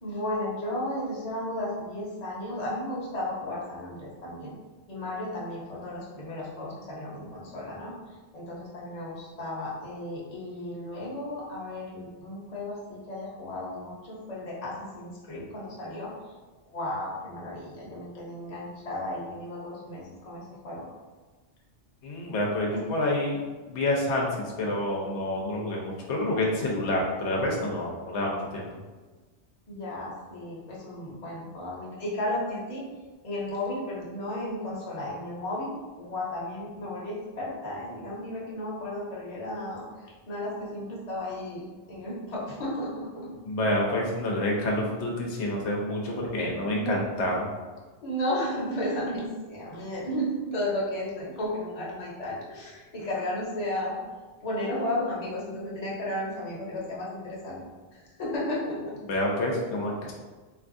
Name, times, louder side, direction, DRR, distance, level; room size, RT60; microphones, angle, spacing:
voice 1, 0.0-4.5 4.9-7.9 8.3-16.1 16.6-20.9 22.7-22.8 29.7-32.8 33.2-39.8 40.3-43.3 46.7-47.0 48.0-54.0 54.4-57.6 57.9-59.0, left 1 dB, 40° left, -5 dB, 0.8 m, -34 dB
voice 2, 22.0-28.7 43.5-47.5 59.1-60.1, left 1 dB, 85° left, -1 dB, 1.0 m, -28 dB
3.4 x 2.6 x 2.5 m, 1.3 s
omnidirectional pair, 1.1 m